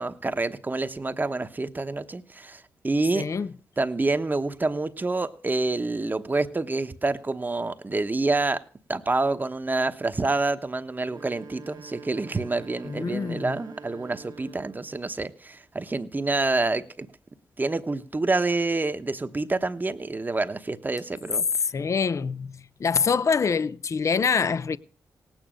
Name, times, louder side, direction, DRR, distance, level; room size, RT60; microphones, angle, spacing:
voice 1, 0.0-3.3 3.8-8.6 8.9-17.1 17.6-21.5, right 3 dB, 25° right, 1.0 m, -27 dB
voice 2, 3.2-3.5 12.9-13.5 21.6-22.5 22.8-24.8, left 5 dB, 45° left, 0.6 m, -25 dB
sound 1, 11.0-15.0, right 5 dB, 75° right, 1.5 m, -45 dB
18.0 x 9.1 x 6.3 m
cardioid pair, 80°, 7 cm